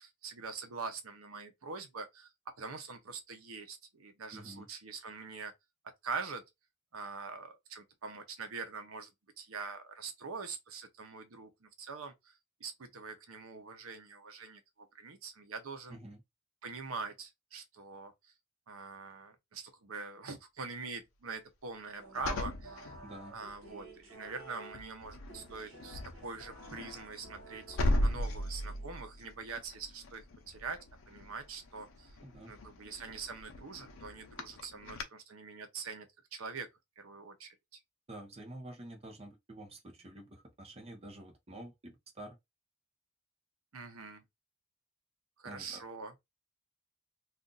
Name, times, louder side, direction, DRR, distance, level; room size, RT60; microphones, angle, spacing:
voice 1, 0.0-2.3 2.6-5.5 6.0-6.4 6.9-9.1 9.4-12.3 12.6-16.0 16.6-18.3 18.7-22.9 23.3-32.1 32.5-36.7 37.0-37.5 43.7-44.2 45.4-46.1, right 4 dB, 85° right, 0.7 m, -44 dB
voice 2, 4.3-4.7 15.9-16.2 23.0-23.4 32.2-32.5 38.1-42.4 45.4-45.8, right 1 dB, 30° right, 0.8 m, -48 dB
sound 1, 21.9-29.3, right 2 dB, 70° right, 1.4 m, -54 dB
sound 2, 22.1-23.7 24.2-24.5 24.7-35.0, left 1 dB, 75° left, 0.7 m, -38 dB
2.5 x 2.5 x 3.8 m
head